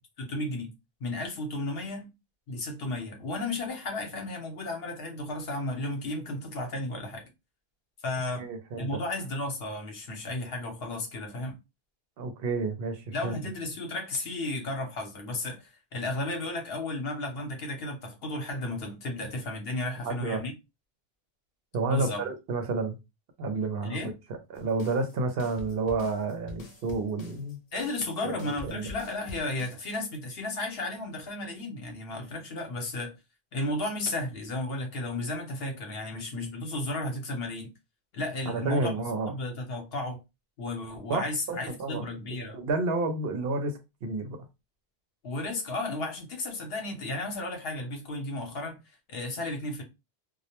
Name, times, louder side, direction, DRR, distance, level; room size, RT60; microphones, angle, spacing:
voice 1, 0.2-0.7 1.0-2.1 2.5-7.3 8.0-8.5 8.8-11.6 13.1-20.5 21.8-22.2 23.8-24.1 27.7-33.1 33.5-37.7 38.1-38.9 39.3-40.2 40.6-42.6 45.2-48.8 49.1-49.8, left 2 dB, 70° left, 1.0 m, -33 dB
voice 2, 8.4-9.0 12.2-13.4 20.0-20.4 21.7-23.0 23.4-24.0 24.3-27.6 28.2-28.9 38.4-39.3 41.1-42.1 42.5-44.4, right 3 dB, 70° right, 0.8 m, -30 dB
sound 1, 24.5-30.0, left 2 dB, 50° left, 0.5 m, -46 dB
2.3 x 2.1 x 2.8 m
omnidirectional pair, 1.1 m